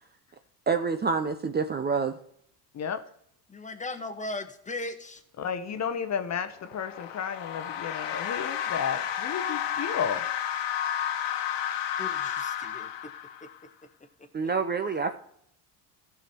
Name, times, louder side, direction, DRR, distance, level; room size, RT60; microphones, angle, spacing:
voice 1, 0.7-2.1 14.3-15.2, right 5 dB, 20° right, 0.6 m, -27 dB
voice 2, 3.5-5.2 12.0-13.1 13.4-13.5 14.2-14.5, left 2 dB, 15° left, 1.2 m, -38 dB
voice 3, 5.4-10.2, left 7 dB, 35° left, 0.9 m, -32 dB
sound 1, 6.6-13.6, left 9 dB, 70° left, 1.4 m, -32 dB
15.0 x 6.2 x 4.4 m
supercardioid pair, 90°, 45 cm